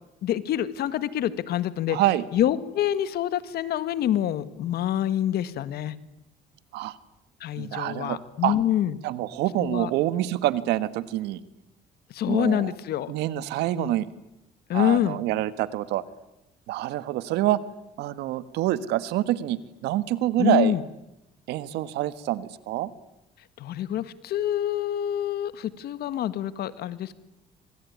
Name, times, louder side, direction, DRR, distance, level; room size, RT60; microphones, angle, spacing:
voice 1, 0.2-2.0 2.3-6.0 7.4-9.0 9.6-9.9 12.1-13.1 13.8-14.0 14.7-15.2 20.4-20.8 23.6-27.2, left 11 dB, 70° left, 14 dB, 1.7 m, -26 dB
voice 2, 1.9-2.2 6.7-7.0 7.6-8.2 8.4-8.5 9.0-11.4 12.3-12.7 13.1-14.1 14.7-16.0 16.7-17.6 18.0-20.7 21.5-22.9, right 14 dB, 85° right, 14 dB, 1.5 m, -26 dB
25.0 x 24.5 x 9.6 m, 0.92 s
cardioid pair, 110°, 17 cm